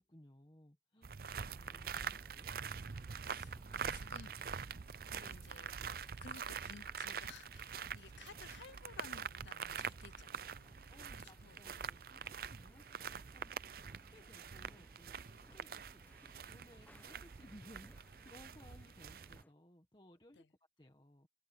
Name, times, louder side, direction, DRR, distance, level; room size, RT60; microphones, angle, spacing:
voice 1, 0.0-2.5 10.9-17.9 18.2-20.5 20.8-21.3, left 1 dB, 25° left, 1.5 m, -61 dB
sound 1, 1.0-19.4, right 6 dB, 55° right, 0.5 m, -45 dB
sound 2, 1.3-19.5, left 1 dB, 10° left, 0.9 m, -66 dB
voice 2, 3.1-11.6 20.4-20.5, left 6 dB, 90° left, 0.6 m, -58 dB
head